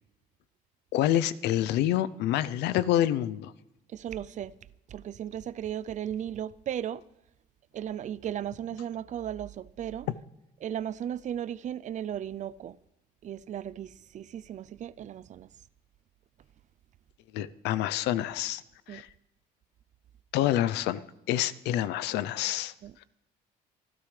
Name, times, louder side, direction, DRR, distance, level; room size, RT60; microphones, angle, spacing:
voice 1, 0.9-3.5 17.3-18.6 18.9-19.1 20.3-21.0 21.3-22.7, left 12 dB, 85° left, 0.6 m, -27 dB
voice 2, 3.9-4.5 4.9-7.0 7.7-10.1 10.6-12.8 13.2-15.5 18.9-19.0 22.8-22.9, right 10 dB, 45° right, 0.5 m, -36 dB
25.5 x 12.0 x 3.3 m
cardioid pair, 110°, 17 cm